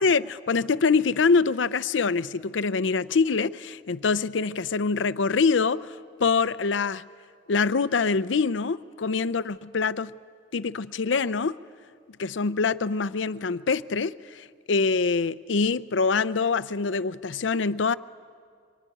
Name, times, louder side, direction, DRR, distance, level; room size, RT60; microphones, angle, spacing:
voice 1, 0.0-5.9 6.2-7.0 7.5-10.1 10.5-11.6 12.2-17.9, left 4 dB, 80° left, 0.6 m, -24 dB
25.0 x 24.0 x 9.9 m
head